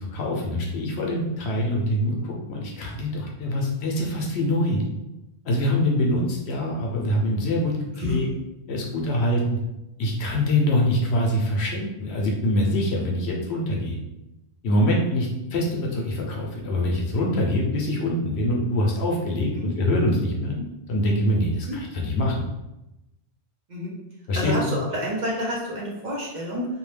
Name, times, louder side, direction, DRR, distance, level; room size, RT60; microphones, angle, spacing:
voice 1, 0.0-4.8 5.4-8.3 8.7-9.6 10.0-14.0 14.6-20.5 20.9-22.5 24.3-24.5, left 1 dB, 80° left, -1 dB, 0.9 m, -24 dB
voice 2, 8.0-8.3 19.5-19.7 20.5-20.6 21.7-21.8 23.7-23.9 24.3-26.7, equal, 50° right, -4 dB, 0.7 m, -29 dB
2.7 x 2.2 x 3.2 m, 0.94 s
omnidirectional pair, 1.1 m